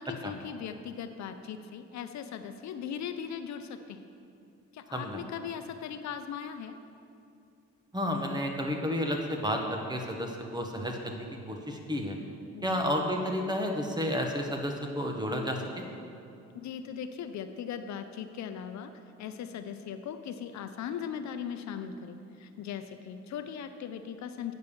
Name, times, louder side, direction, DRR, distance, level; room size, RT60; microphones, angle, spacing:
voice 1, 0.0-4.0 4.7-6.8 12.5-12.8 16.5-18.9 19.2-24.5, left 8 dB, 65° left, 8 dB, 0.6 m, -39 dB
voice 2, 7.9-12.2 12.6-15.9, equal, 15° right, 2 dB, 1.2 m, -31 dB
9.0 x 5.4 x 6.8 m, 2.5 s
cardioid pair, 90°, 30 cm